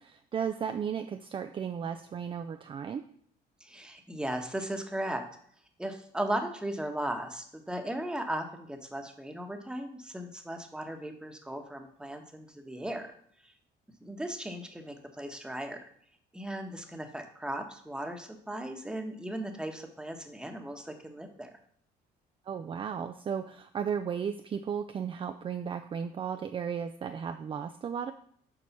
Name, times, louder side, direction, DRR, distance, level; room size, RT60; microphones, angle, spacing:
voice 1, 0.0-3.0 22.5-28.1, right 7 dB, 30° right, 8 dB, 0.4 m, -35 dB
voice 2, 3.6-5.2 5.8-13.1 13.4-13.5 14.0-15.8 16.3-21.5, right 1 dB, 5° right, 4 dB, 1.1 m, -37 dB
7.0 x 4.7 x 5.9 m, 0.64 s
cardioid pair, 110°, 17 cm